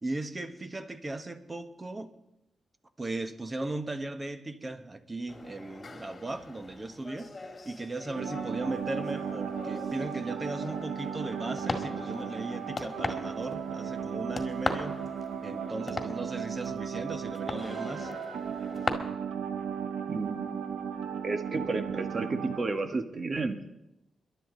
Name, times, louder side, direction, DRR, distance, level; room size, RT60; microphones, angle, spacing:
voice 1, 0.0-2.1 3.0-7.3 7.6-15.0 15.4-18.1, right 2 dB, 30° right, 1.4 m, -37 dB
sound 1, 5.3-18.9, left 3 dB, 35° left, 2.0 m, -40 dB
sound 2, 8.1-22.6, right 7 dB, 90° right, 1.0 m, -36 dB
voice 2, 20.1-20.6 21.2-23.8, right 3 dB, 50° right, 1.5 m, -32 dB
22.5 x 11.5 x 4.0 m
cardioid pair, 60°, 0 cm